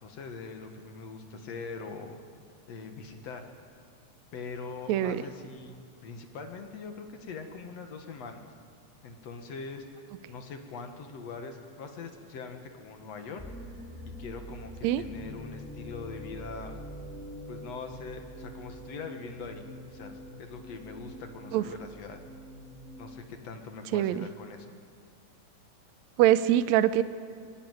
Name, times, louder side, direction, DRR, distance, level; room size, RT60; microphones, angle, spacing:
voice 1, 0.0-2.2 2.7-3.5 4.3-8.4 9.0-9.9 10.3-13.4 14.1-16.8 17.5-22.2 23.0-24.7, left 4 dB, 60° left, 5 dB, 2.5 m, -42 dB
voice 2, 4.9-5.2 14.8-15.0 21.5-21.6 23.9-24.3 26.2-27.0, right 12 dB, 75° right, 12 dB, 1.9 m, -23 dB
sound 1, 13.4-23.4, equal, 5° left, 1.5 m, -45 dB
22.0 x 16.0 x 9.4 m, 2.2 s
omnidirectional pair, 3.6 m